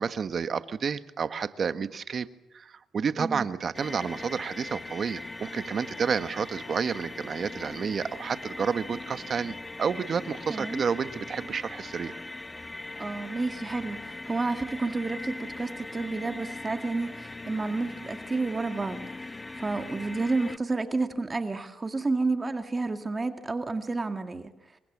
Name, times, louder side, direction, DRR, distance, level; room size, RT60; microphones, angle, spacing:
voice 1, 0.0-2.3 2.5-12.2, right 6 dB, 45° right, 12 dB, 1.5 m, -30 dB
sound 1, 3.7-20.6, left 2 dB, 20° left, 1.0 m, -40 dB
voice 2, 10.5-10.8 13.0-24.5, right 3 dB, 25° right, 8 dB, 2.0 m, -30 dB
27.5 x 23.5 x 7.4 m, 0.84 s
cardioid pair, 90°, 0 cm